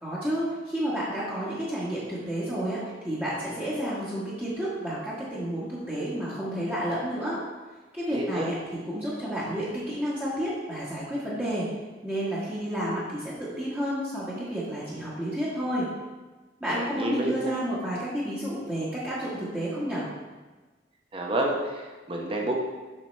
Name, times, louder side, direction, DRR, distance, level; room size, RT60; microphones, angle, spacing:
voice 1, 0.0-7.4 7.9-8.6 8.8-11.7 12.0-15.9 16.6-20.0, equal, 10° right, -9 dB, 1.3 m, -30 dB
voice 2, 8.1-8.5 16.7-17.5 21.1-22.6, right 1 dB, 30° right, 0 dB, 0.8 m, -29 dB
7.4 x 5.8 x 3.2 m, 1.3 s
head